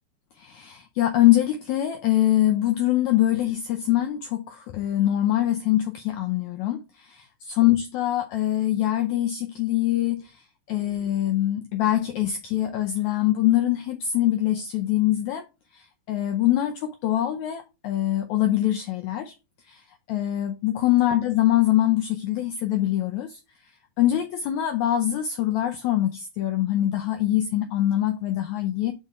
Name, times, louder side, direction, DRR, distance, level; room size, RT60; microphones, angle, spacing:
voice 1, 0.4-10.3 10.7-15.4 15.7-15.8 16.1-19.3 19.7-19.8 20.1-23.4 24.0-28.9, left 13 dB, 75° left, 1.8 m, -23 dB
5.5 x 4.7 x 5.5 m
omnidirectional pair, 4.0 m